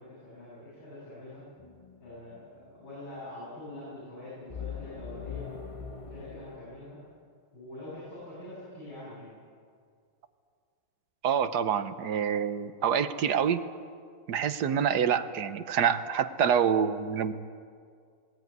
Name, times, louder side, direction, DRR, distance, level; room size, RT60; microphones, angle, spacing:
voice 1, 0.0-1.4 2.0-5.4 6.1-7.0 7.5-9.3, left 1 dB, 90° left, -9 dB, 8.4 m, -44 dB
sound 1, 1.6-2.4 4.5-6.6, left 6 dB, 20° left, 1.0 m, -41 dB
voice 2, 11.2-13.6 14.3-17.3, right 8 dB, 60° right, 11 dB, 1.4 m, -26 dB
19.5 x 19.0 x 9.5 m, 2.2 s
omnidirectional pair, 2.2 m